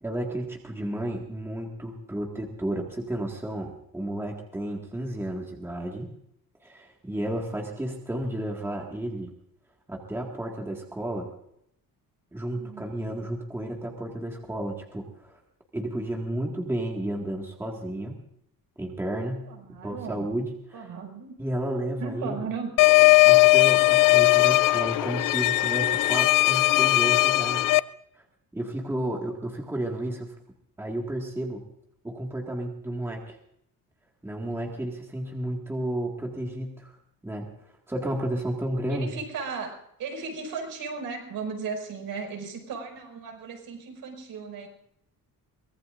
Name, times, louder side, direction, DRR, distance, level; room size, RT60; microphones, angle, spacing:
voice 1, 0.0-6.1 6.6-9.3 9.9-11.3 12.3-15.4 15.7-18.2 18.8-19.5 19.8-20.9 21.4-22.4 23.2-27.7 28.5-30.3 30.8-31.6 32.0-33.4 34.2-36.9 37.2-37.5 37.9-39.1, right 1 dB, 5° right, 0 dB, 1.9 m, -32 dB
voice 2, 12.6-12.9 19.4-20.3 20.7-21.3 22.0-22.7 38.9-44.7, right 5 dB, 70° right, 2 dB, 5.9 m, -36 dB
sound 1, 22.8-27.8, left 19 dB, 60° left, 0.5 m, -19 dB
23.5 x 19.5 x 2.6 m, 0.75 s
cardioid pair, 180°, 35 cm